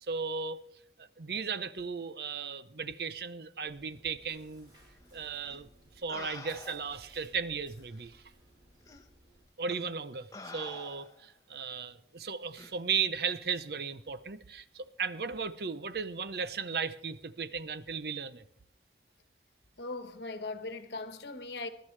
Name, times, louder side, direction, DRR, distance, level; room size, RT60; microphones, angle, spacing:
voice 1, 0.1-0.6 1.0-4.7 5.1-5.7 6.0-8.2 9.6-18.4, right 5 dB, 60° right, 0.7 m, -36 dB
Chewing mastication, 3.7-9.4, equal, 30° right, 5.3 m, -60 dB
sound 1, 5.5-5.6 6.1-7.0 7.9-8.0 8.9-9.0 9.7-9.9 10.3-11.3 12.6-12.8, left 3 dB, 20° left, 1.0 m, -47 dB
voice 2, 19.8-21.7, left 3 dB, 75° left, 1.1 m, -39 dB
23.0 x 11.5 x 3.3 m
head